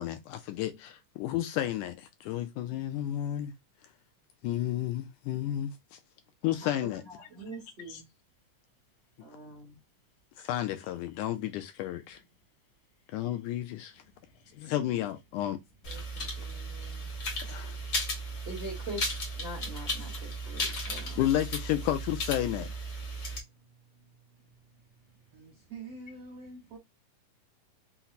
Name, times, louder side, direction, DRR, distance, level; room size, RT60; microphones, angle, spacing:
voice 1, 0.0-3.5 4.4-6.0 6.4-7.0 7.9-8.0 10.4-12.2 13.1-14.0 14.5-15.6 15.9-16.0 17.4-17.8 21.2-22.7, left 12 dB, 80° left, 1.8 m, -32 dB
voice 2, 7.1-8.0 9.2-9.8 15.9-17.1 18.4-21.2, right 1 dB, 55° right, 0.6 m, -44 dB
sound 1, 15.8-23.4, equal, 55° left, 0.8 m, -35 dB
voice 3, 25.3-26.8, right 3 dB, 75° right, 1.4 m, -45 dB
5.7 x 2.1 x 4.0 m
omnidirectional pair, 3.9 m